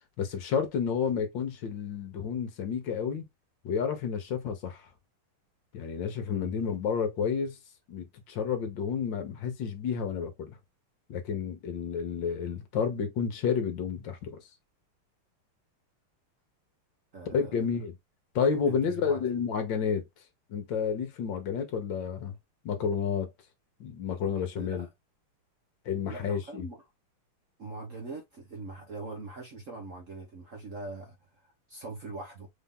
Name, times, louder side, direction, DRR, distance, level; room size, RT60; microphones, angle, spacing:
voice 1, 0.2-3.3 3.6-4.9 5.7-7.6 7.9-10.6 11.1-14.5 17.3-17.9 18.3-20.1 20.5-22.4 22.6-23.3 23.8-24.9 25.8-26.7, left 6 dB, 60° left, 1.6 m, -30 dB
voice 2, 17.1-17.6 18.7-19.4 24.5-24.9 26.1-26.8 27.6-32.5, right 3 dB, 50° right, 1.0 m, -42 dB
4.6 x 2.7 x 3.6 m
omnidirectional pair, 2.4 m